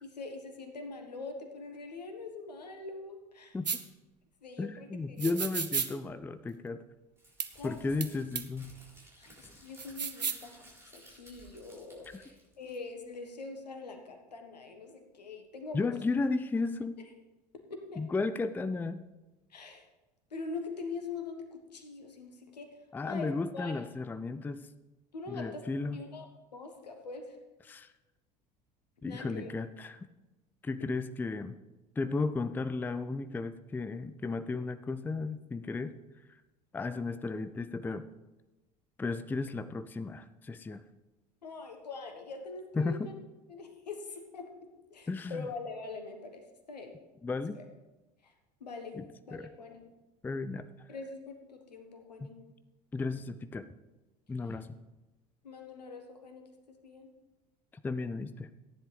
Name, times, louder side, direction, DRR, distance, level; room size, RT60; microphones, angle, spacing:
voice 1, 0.0-3.5 4.4-4.9 5.2-5.3 7.5-7.8 9.2-15.9 17.7-18.0 19.5-19.8 20.3-22.7 23.1-23.3 23.5-23.7 25.1-25.6 25.9-26.3 26.5-27.4 29.0-29.5 41.4-43.1 43.5-46.4 46.7-46.9 47.5-47.6 48.2-48.3 48.6-49.0 49.3-49.8 50.9-52.3 55.4-56.5 56.8-57.1, left 3 dB, 75° left, 4 dB, 1.4 m, -43 dB
sound 1, 3.6-3.8 5.2-5.9 7.4-7.5 8.0-8.1 8.3-8.4 9.8-10.4, right 6 dB, 85° right, 0.6 m, -33 dB
voice 2, 4.6-6.8 7.6-8.7 12.1-12.2 15.7-16.9 18.0-19.0 22.9-24.7 25.3-26.0 27.7-27.9 29.0-30.1 30.6-31.6 32.0-35.9 36.3-36.4 36.7-38.1 39.0-40.8 42.7-43.1 45.1-45.5 47.2-47.6 48.9-49.5 50.2-50.9 52.9-53.6 54.3-54.7 57.8-58.5, left 3 dB, 10° left, 12 dB, 0.4 m, -34 dB
Crumpling crinkling, 7.2-13.1, right 1 dB, 10° right, 4.2 m, -57 dB
14.5 x 10.0 x 3.4 m, 1.1 s
figure-of-eight pair, 70°, 21 cm